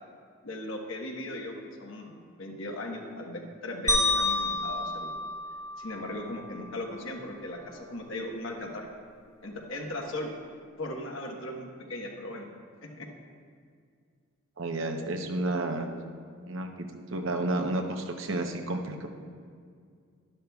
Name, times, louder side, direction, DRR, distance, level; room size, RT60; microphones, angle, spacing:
voice 1, 0.4-5.1 5.8-8.9 9.4-10.3 10.8-12.5 13.0-13.1, left 1 dB, 70° left, 1 dB, 1.2 m, -38 dB
sound 1, 3.9-6.2, left 2 dB, 15° left, 1.3 m, -29 dB
voice 2, 14.6-15.9 16.5-16.9 17.1-19.1, right 2 dB, 70° right, 4 dB, 0.9 m, -31 dB
12.0 x 11.5 x 2.4 m, 2.1 s
head